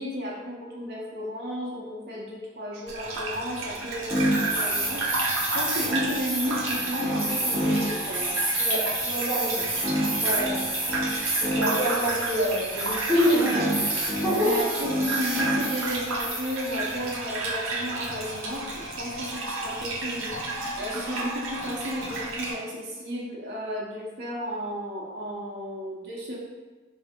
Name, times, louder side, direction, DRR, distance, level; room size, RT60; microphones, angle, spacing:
voice 1, 0.0-8.3 13.3-13.7 14.4-20.4 20.7-26.4, equal, 55° right, -5 dB, 0.6 m, -34 dB
Gurgling / Bathtub (filling or washing), 2.9-22.5, right 2 dB, 90° right, 0.7 m, -32 dB
sound 1, 4.1-17.2, right 1 dB, 10° right, 0.9 m, -28 dB
voice 2, 8.6-9.7 10.2-10.6 11.3-13.5 14.2-14.6, equal, 5° left, -12 dB, 1.4 m, -26 dB
3.6 x 2.6 x 3.5 m, 1.3 s
head